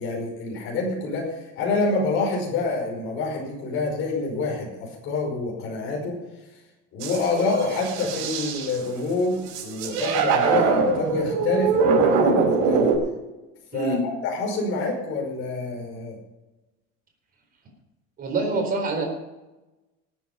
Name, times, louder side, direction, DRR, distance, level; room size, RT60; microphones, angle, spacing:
voice 1, 0.0-6.2 6.9-12.9 13.7-16.2, left 3 dB, 40° left, -1 dB, 5.3 m, -27 dB
sound 1, 7.0-8.8 9.5-13.0, right 4 dB, 85° right, 5.2 m, -22 dB
voice 2, 13.7-14.0 18.2-19.0, right 2 dB, 30° right, 3 dB, 4.2 m, -25 dB
19.0 x 9.4 x 5.6 m, 1.0 s
cardioid pair, 175°, 31 cm